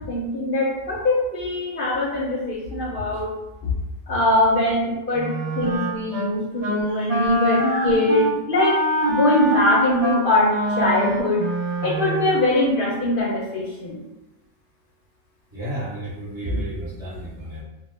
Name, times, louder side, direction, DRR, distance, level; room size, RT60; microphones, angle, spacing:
voice 1, 0.1-3.3 3.6-3.7 4.1-8.8 9.1-11.4 11.8-14.0, left 1 dB, 60° left, -4 dB, 0.6 m, -22 dB
Wind instrument woodwind instrument, 5.2-6.3 6.6-6.8 7.1-12.4, right 1 dB, 75° right, 0.3 m, -24 dB
voice 2, 15.5-17.6, right 1 dB, 25° right, -9 dB, 0.7 m, -31 dB
2.2 x 2.1 x 3.1 m, 0.99 s
omnidirectional pair, 1.3 m